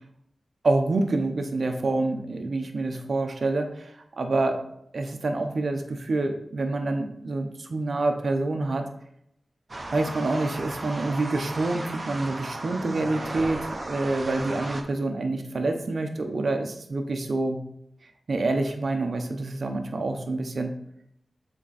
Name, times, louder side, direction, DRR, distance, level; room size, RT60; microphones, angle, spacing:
voice 1, 0.6-4.6 4.9-8.9 9.9-17.6 18.3-20.7, right 2 dB, 70° right, 5 dB, 0.9 m, -27 dB
sound 1, 9.7-14.8, right 2 dB, 40° right, 1.0 m, -35 dB
7.7 x 4.5 x 4.2 m, 0.75 s
wide cardioid pair, 75°, 0 cm